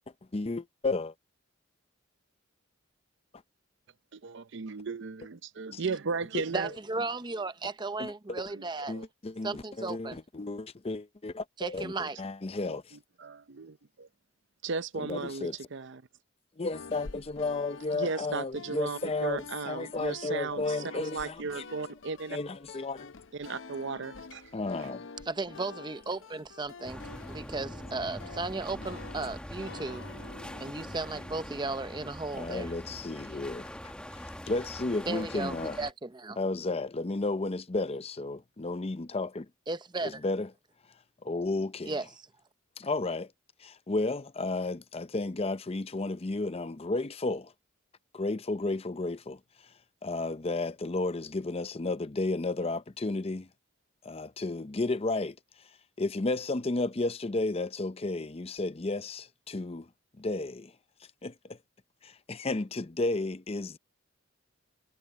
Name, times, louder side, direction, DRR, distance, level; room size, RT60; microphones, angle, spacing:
voice 1, 0.3-1.1 5.7-5.8 6.3-6.4 8.0-8.4 8.9-13.0 15.0-15.6 16.6-21.6 22.3-23.1 24.5-25.1 32.3-35.8 36.4-39.5 40.0-40.5 41.2-42.0 42.8-43.3 43.6-47.5 48.1-49.4 50.0-53.5 54.0-55.4 56.0-59.9 60.2-60.7 61.2-61.6 62.0-63.8, left 2 dB, 30° left, 0.6 m, -33 dB
voice 2, 4.1-6.7 8.5-9.1 13.2-14.1 14.6-16.0 17.9-22.4 23.3-24.4, right 4 dB, 60° right, 0.6 m, -36 dB
voice 3, 6.5-9.0 9.4-10.2 11.6-12.2 25.3-30.0 30.6-32.7 35.1-36.4 39.7-40.2 41.9-42.1, right 3 dB, 20° right, 0.7 m, -35 dB
sound 1, 16.7-32.2, left 4 dB, 65° left, 0.7 m, -48 dB
sound 2, 26.8-35.9, equal, 5° left, 1.2 m, -43 dB
head